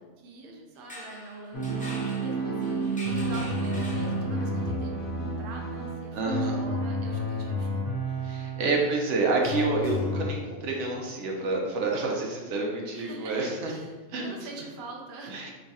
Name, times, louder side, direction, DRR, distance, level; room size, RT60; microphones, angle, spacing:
voice 1, 0.2-8.4 8.7-9.3 12.0-15.5, right 3 dB, 60° right, 1 dB, 0.7 m, -44 dB
sound 1, 0.7-4.6, left 1 dB, 10° left, 0.4 m, -44 dB
sound 2, 1.5-9.2 9.4-10.3, right 1 dB, 55° left, 0.8 m, -30 dB
voice 2, 6.1-6.6 8.2-13.7 14.1-14.3 15.2-15.5, right 3 dB, 85° right, -1 dB, 1.0 m, -28 dB
3.0 x 2.3 x 4.0 m, 1.3 s
omnidirectional pair, 1.2 m